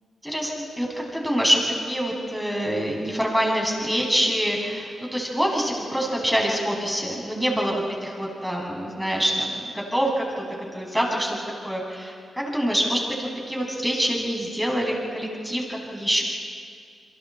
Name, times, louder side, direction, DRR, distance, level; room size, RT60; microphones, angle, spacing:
voice 1, 0.2-7.8 8.2-11.4 11.6-16.2, equal, 5° right, -1 dB, 7.7 m, -25 dB
29.5 x 23.0 x 4.5 m, 2.3 s
supercardioid pair, 45°, 0 cm